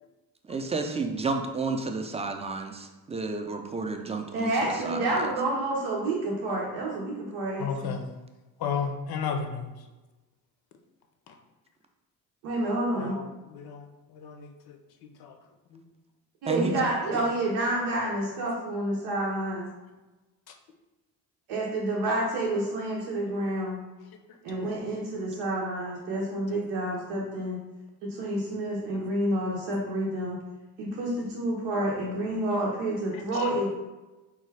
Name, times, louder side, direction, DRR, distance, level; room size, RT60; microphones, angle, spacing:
voice 1, 0.4-5.3 16.5-16.8 17.1-17.3, right 3 dB, 15° right, 4 dB, 0.4 m, -32 dB
voice 2, 4.3-8.0 12.4-13.2 16.4-19.7 21.5-23.8 24.4-27.6 28.0-30.4 30.8-33.8, right 1 dB, 85° right, -3 dB, 0.6 m, -29 dB
voice 3, 7.6-8.0 8.6-9.7 13.0-13.3 13.5-13.9 14.1-14.5 15.2-15.3 15.7-15.8 33.4-33.5, left 6 dB, 65° left, 5 dB, 0.6 m, -32 dB
3.8 x 2.3 x 3.2 m, 1.1 s
supercardioid pair, 60°, 41 cm